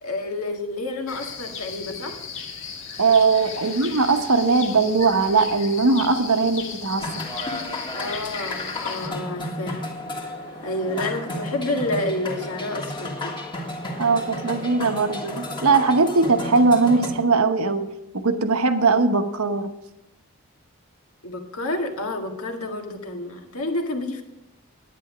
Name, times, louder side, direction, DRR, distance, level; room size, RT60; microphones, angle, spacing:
voice 1, 0.0-2.2 7.9-9.8 10.6-13.3 21.2-24.2, left 2 dB, 80° left, 4 dB, 1.8 m, -29 dB
sound 1, 1.1-9.1, left 6 dB, 60° left, 1.5 m, -36 dB
voice 2, 3.0-7.2 14.0-17.9 18.1-19.7, right 4 dB, 80° right, 8 dB, 1.0 m, -20 dB
sound 2, 7.0-17.1, left 1 dB, 20° left, 1.6 m, -32 dB
10.5 x 9.5 x 6.0 m, 0.92 s
head